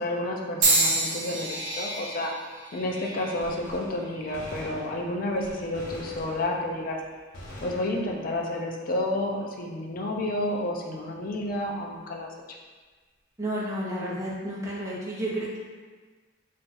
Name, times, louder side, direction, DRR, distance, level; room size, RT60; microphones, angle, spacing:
voice 1, 0.0-2.3 2.7-7.0 7.6-12.3, left 1 dB, 45° left, 0 dB, 0.4 m, -30 dB
sound 1, 0.6-4.7 5.5-5.9 6.8-7.0, right 3 dB, 85° right, 0.7 m, -29 dB
Gunshot gunfire, 3.4-6.9 7.3-8.4, left 1 dB, 80° left, 0.7 m, -44 dB
voice 2, 13.4-15.6, right 1 dB, 15° right, -7 dB, 0.7 m, -31 dB
2.5 x 2.3 x 3.9 m, 1.4 s
head